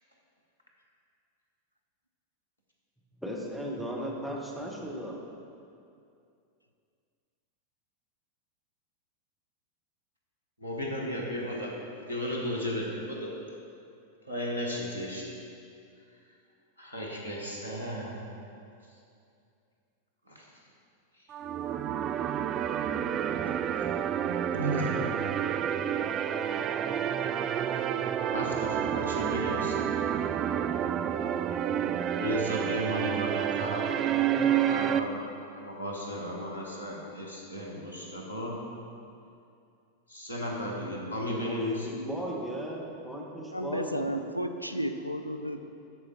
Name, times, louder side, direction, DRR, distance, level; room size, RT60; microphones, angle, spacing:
voice 1, 3.2-5.2 41.3-44.1, equal, ahead, -2 dB, 1.4 m, -36 dB
voice 2, 10.6-11.7 12.1-13.3 14.3-15.3 16.8-18.2 20.3-20.5 21.9-22.0 24.5-25.0 28.3-29.8 32.2-35.1 35.5-38.6 40.1-41.9, equal, 90° right, -3 dB, 1.4 m, -34 dB
sound 1, 21.3-35.0, right 9 dB, 30° right, 0.3 m, -29 dB
voice 3, 43.5-45.7, equal, 90° left, 7 dB, 0.4 m, -33 dB
12.0 x 4.9 x 4.3 m, 2.5 s
figure-of-eight pair, 90°, 0 cm